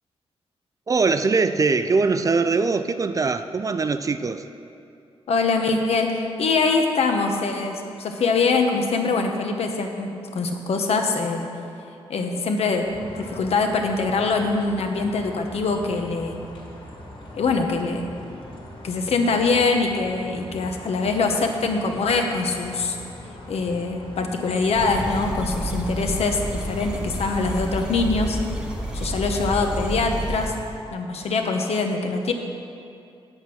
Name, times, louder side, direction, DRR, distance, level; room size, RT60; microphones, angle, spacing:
voice 1, 0.9-4.4, right 4 dB, 30° right, 10 dB, 0.4 m, -22 dB
voice 2, 5.3-11.5 12.1-12.9 13.2-16.4 17.3-18.0 18.8-23.0 23.5-28.4 28.9-30.5 30.9-32.3, left 4 dB, 75° left, 4 dB, 1.0 m, -23 dB
sound 1, 12.8-30.3, left 1 dB, 50° left, 2.1 m, -41 dB
sound 2, 24.7-30.5, right 1 dB, 5° right, 0.8 m, -30 dB
8.7 x 8.1 x 6.3 m, 2.5 s
wide cardioid pair, 140°, 11 cm